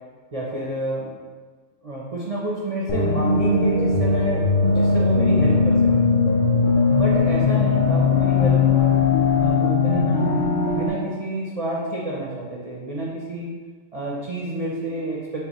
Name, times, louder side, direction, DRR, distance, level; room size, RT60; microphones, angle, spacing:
voice 1, 0.3-1.1 1.8-6.1 7.0-9.0 9.4-10.4 10.7-13.6 13.9-15.5, right 1 dB, 45° right, -5 dB, 0.4 m, -29 dB
sound 1, 2.9-10.9, left 4 dB, 50° left, 0.6 m, -19 dB
6.7 x 2.5 x 2.9 m, 1.4 s
omnidirectional pair, 1.4 m